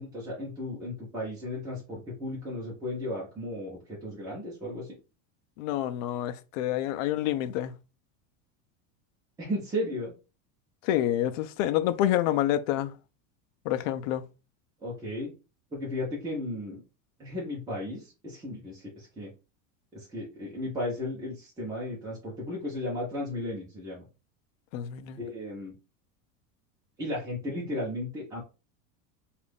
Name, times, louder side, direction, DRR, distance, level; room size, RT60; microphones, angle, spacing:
voice 1, 0.0-4.9 9.4-10.1 14.8-15.3 15.7-16.8 17.2-19.3 19.9-24.0 25.2-25.7 27.0-28.4, left 1 dB, 10° right, 0.7 m, -35 dB
voice 2, 5.6-7.7 10.8-12.9 13.7-14.3 24.7-25.2, left 12 dB, 75° left, 0.5 m, -28 dB
2.6 x 2.4 x 3.4 m
supercardioid pair, 160°, 40 cm